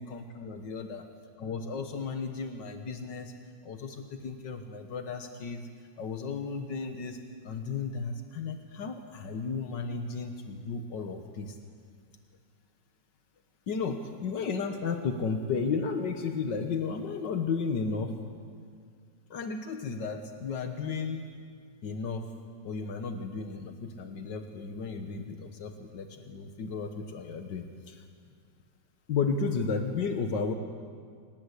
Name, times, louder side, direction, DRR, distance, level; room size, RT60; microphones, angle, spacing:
voice 1, 0.0-1.1 1.4-3.3 3.6-5.7 6.0-11.6 13.7-18.1 19.3-21.2 21.8-22.3 22.6-28.0 29.1-30.5, left 5 dB, 80° left, 6 dB, 1.9 m, -34 dB
27.0 x 20.0 x 8.2 m, 2.1 s
omnidirectional pair, 1.9 m